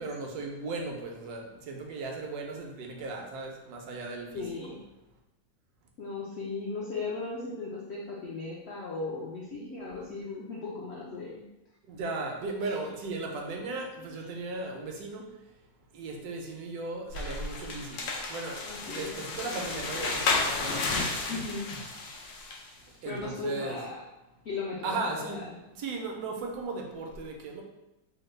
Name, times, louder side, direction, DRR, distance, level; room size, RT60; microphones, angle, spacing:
voice 1, 0.0-4.4 11.9-15.3 15.9-20.9 23.0-23.8 24.8-27.6, right 3 dB, 75° right, 2 dB, 1.1 m, -36 dB
voice 2, 4.3-4.8 6.0-11.5 12.6-12.8 14.1-14.3 18.6-19.2 21.3-21.8 23.1-24.0 24.4-25.6, left 3 dB, 75° left, -4 dB, 0.6 m, -37 dB
sound 1, 17.1-22.7, left 3 dB, 90° left, 1.2 m, -32 dB
3.4 x 2.2 x 3.2 m, 0.95 s
omnidirectional pair, 1.7 m